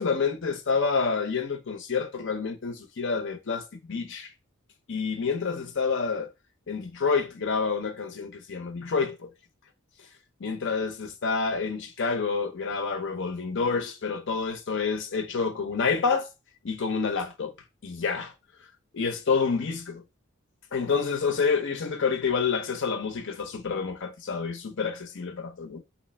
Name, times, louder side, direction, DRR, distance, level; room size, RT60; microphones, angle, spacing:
voice 1, 0.0-4.3 4.9-6.3 6.7-9.3 10.4-16.3 16.6-17.5 17.8-18.3 18.9-20.0 20.7-25.8, left 5 dB, 55° left, 0.6 m, -28 dB
4.2 x 2.9 x 4.2 m
head